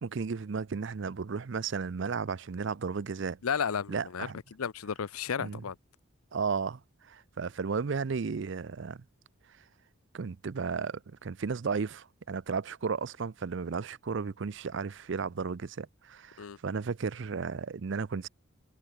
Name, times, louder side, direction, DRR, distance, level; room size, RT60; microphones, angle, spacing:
voice 1, 0.0-3.4 3.9-4.4 5.4-5.6 6.3-9.0 10.1-18.3, right 5 dB, 55° right, 0.5 m, -34 dB
voice 2, 3.4-4.3 4.6-5.8 16.4-16.6, left 7 dB, 90° left, 0.6 m, -33 dB
head